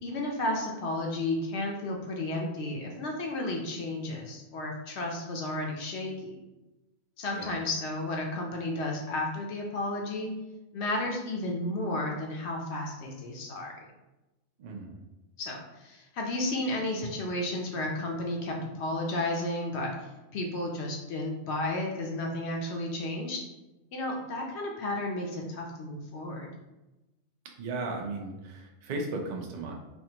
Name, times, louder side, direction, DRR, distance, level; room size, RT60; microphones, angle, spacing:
voice 1, 0.0-6.4 7.2-10.3 10.7-13.7 15.4-19.9 20.3-23.4 23.9-26.5, left 1 dB, 65° left, 0 dB, 0.7 m, -32 dB
voice 2, 14.6-15.0 27.6-29.7, right 2 dB, 70° right, 1 dB, 0.4 m, -36 dB
3.5 x 2.4 x 2.8 m, 1.0 s
omnidirectional pair, 1.4 m